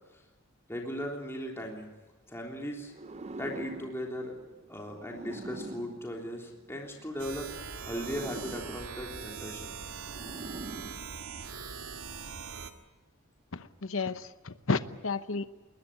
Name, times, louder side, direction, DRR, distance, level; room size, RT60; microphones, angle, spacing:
voice 1, 0.7-1.9 2.3-2.9 3.3-4.3 4.7-7.5 7.8-9.8, equal, 10° left, 0 dB, 3.4 m, -38 dB
sound 1, 2.9-7.0 7.7-11.7, right 2 dB, 30° right, 0.7 m, -45 dB
sound 2, 7.2-12.7, right 6 dB, 85° right, 2.0 m, -42 dB
voice 2, 13.5-15.5, left 4 dB, 65° left, 12 dB, 0.9 m, -32 dB
21.5 x 20.5 x 9.8 m, 1.2 s
head